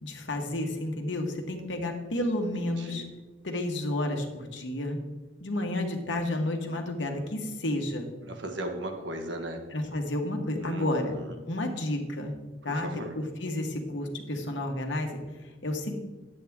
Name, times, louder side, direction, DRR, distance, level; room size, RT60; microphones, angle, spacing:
voice 1, 0.0-3.0 3.4-5.0 5.4-8.1 9.7-11.2 11.5-12.3 12.6-12.9 13.1-15.9, left 1 dB, 75° left, 3 dB, 1.3 m, -31 dB
voice 2, 2.5-3.1 8.2-9.6 10.6-11.4 12.6-13.2, right 1 dB, 75° right, 4 dB, 1.3 m, -37 dB
10.0 x 8.4 x 3.5 m, 1.2 s
head